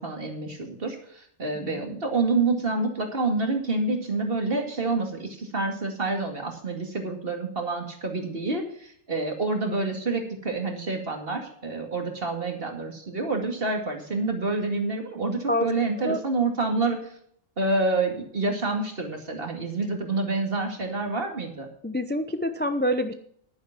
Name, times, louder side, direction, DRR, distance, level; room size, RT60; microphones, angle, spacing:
voice 1, 0.0-17.1 17.6-21.7, right 3 dB, 45° right, 3 dB, 2.4 m, -28 dB
voice 2, 21.8-23.1, equal, 15° left, 9 dB, 0.4 m, -26 dB
11.0 x 9.7 x 6.0 m, 0.64 s
omnidirectional pair, 1.3 m